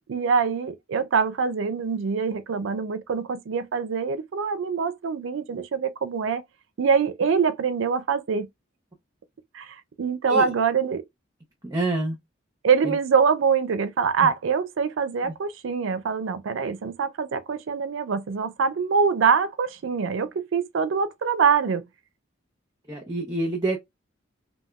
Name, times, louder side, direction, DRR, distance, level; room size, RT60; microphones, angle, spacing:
voice 1, 0.1-6.4 6.8-8.5 9.5-11.0 12.6-21.8, right 6 dB, 85° right, 0.4 m, -24 dB
voice 2, 11.6-12.2 12.8-12.9 22.9-23.8, right 2 dB, 20° right, 0.7 m, -26 dB
3.5 x 2.2 x 2.2 m
head